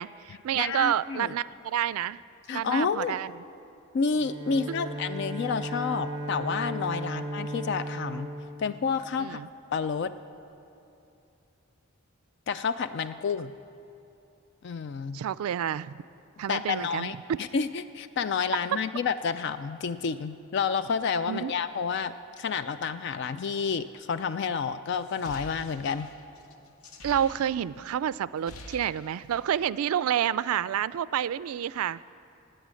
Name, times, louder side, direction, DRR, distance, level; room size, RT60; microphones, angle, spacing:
voice 1, 0.0-2.2 2.5-3.3 4.7-4.8 7.0-7.1 9.2-9.5 15.1-16.0 16.4-17.4 21.3-21.5 27.0-32.0, right 10 dB, 80° right, 18 dB, 0.3 m, -29 dB
voice 2, 0.6-1.3 2.5-3.2 3.9-8.3 8.6-9.4 9.7-10.1 12.5-13.5 14.6-15.2 16.5-26.1, left 5 dB, 55° left, 12 dB, 0.3 m, -30 dB
Bowed string instrument, 4.1-9.7, right 1 dB, 20° right, 1.2 m, -36 dB
sound 1, 25.0-27.9 28.2-29.6, left 2 dB, 85° left, 1.0 m, -47 dB
17.0 x 8.9 x 6.3 m, 2.7 s
head